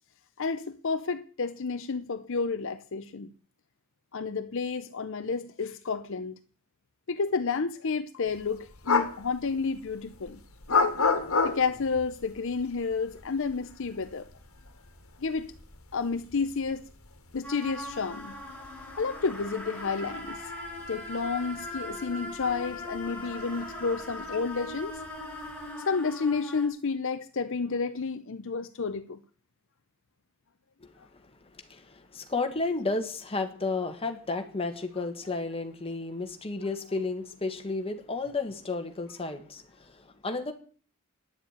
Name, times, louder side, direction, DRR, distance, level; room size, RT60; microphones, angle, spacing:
voice 1, 0.4-3.3 4.1-6.3 7.1-10.4 11.4-14.3 15.2-15.5 15.9-16.8 17.3-18.4 19.0-20.4 20.9-25.0 25.9-29.2, left 4 dB, 65° left, 0.7 m, -31 dB
sound 1, 8.3-25.7, left 4 dB, 80° left, 1.6 m, -35 dB
sound 2, 17.4-26.7, left 1 dB, 10° left, 2.5 m, -40 dB
voice 2, 31.5-40.5, left 3 dB, 25° left, 1.6 m, -32 dB
10.0 x 7.3 x 8.8 m
head